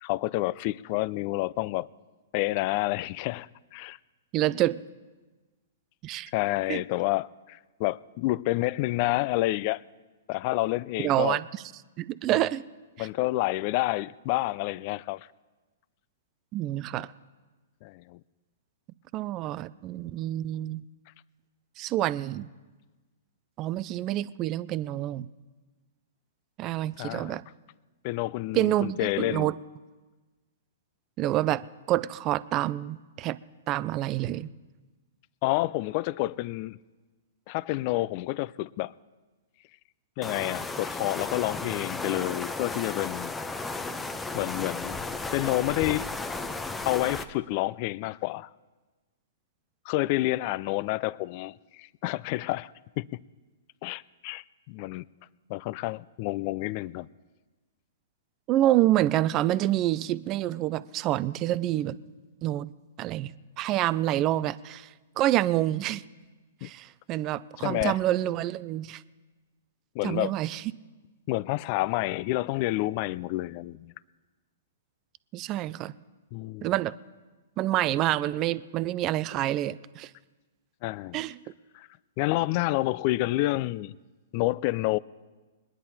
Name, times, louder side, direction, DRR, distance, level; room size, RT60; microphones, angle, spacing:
voice 1, 0.0-1.9 2.3-4.0 6.3-9.8 10.3-11.4 12.3-12.4 13.0-15.3 17.8-18.2 27.0-27.4 28.0-29.5 35.4-36.8 37.5-38.9 40.2-43.3 44.3-45.0 45.3-46.1 46.8-48.5 49.9-52.7 53.0-53.1 53.8-55.0 55.5-57.1 66.6-66.7 67.6-68.0 69.9-70.4 71.3-73.9 76.3-76.7 80.8-81.2 81.7-81.9 82.2-84.0 84.3-85.0, left 19 dB, 45° left, 0.4 m, -29 dB
voice 2, 4.3-4.8 6.0-6.3 6.7-6.8 11.0-11.5 12.0-12.6 13.0-13.1 16.5-17.1 19.1-20.8 21.8-22.5 23.6-25.3 26.6-27.4 28.5-29.6 31.2-33.4 33.7-34.5 58.5-62.0 62.4-62.7 63.0-64.9 65.2-66.0 66.6-69.0 70.0-70.6 75.3-75.9 76.6-76.9 77.6-80.1 81.1-81.4, right 14 dB, 35° right, 0.4 m, -27 dB
sound 1, 40.2-47.2, left 3 dB, 10° left, 0.8 m, -34 dB
21.5 x 10.0 x 4.2 m
hypercardioid pair, 115°, 0 cm